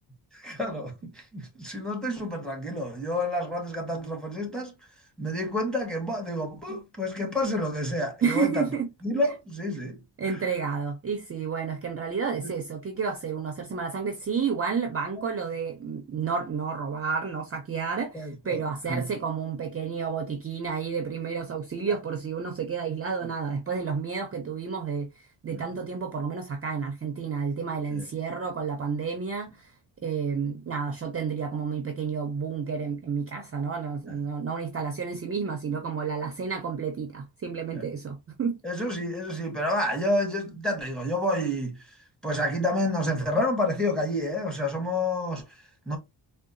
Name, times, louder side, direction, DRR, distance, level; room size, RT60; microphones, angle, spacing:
voice 1, 0.3-4.7 5.2-8.7 9.0-10.4 12.4-12.5 15.2-15.3 18.1-18.6 18.9-19.1 25.5-25.6 27.9-28.1 34.1-34.2 37.7-37.8 38.6-41.9 42.2-46.0, left 1 dB, ahead, 0.7 m, -29 dB
voice 2, 8.2-8.8 10.2-29.7 30.0-38.6, right 6 dB, 35° right, 0.4 m, -30 dB
3.6 x 2.3 x 2.5 m
wide cardioid pair, 175°, 45 cm